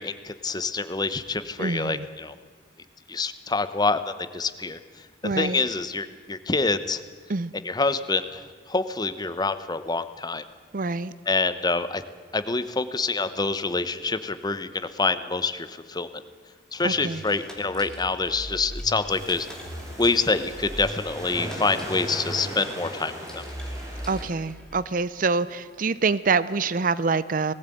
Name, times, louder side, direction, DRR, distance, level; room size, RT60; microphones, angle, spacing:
voice 1, 0.0-2.3 3.1-4.8 5.4-7.0 7.6-10.4 11.3-12.0 12.3-16.1 16.7-19.5 20.0-23.4, left 3 dB, 25° left, 12 dB, 0.9 m, -26 dB
voice 2, 1.6-2.1 5.2-5.6 7.3-7.5 10.7-11.1 16.8-17.2 24.1-27.5, right 4 dB, 50° right, 17 dB, 0.6 m, -26 dB
sound 1, 16.8-24.8, equal, 5° left, 2.6 m, -40 dB
sound 2, 19.1-24.2, equal, 20° right, 4.6 m, -38 dB
19.0 x 15.5 x 9.2 m, 1.5 s
head